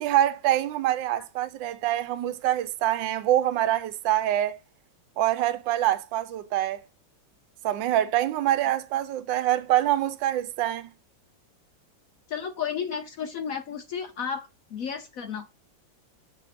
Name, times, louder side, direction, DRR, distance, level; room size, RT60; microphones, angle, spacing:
voice 1, 0.0-4.6 5.2-6.8 7.6-10.9, right 13 dB, 75° right, 1.4 m, -25 dB
voice 2, 12.3-15.5, left 7 dB, 65° left, 0.8 m, -33 dB
7.2 x 3.5 x 5.8 m
omnidirectional pair, 2.1 m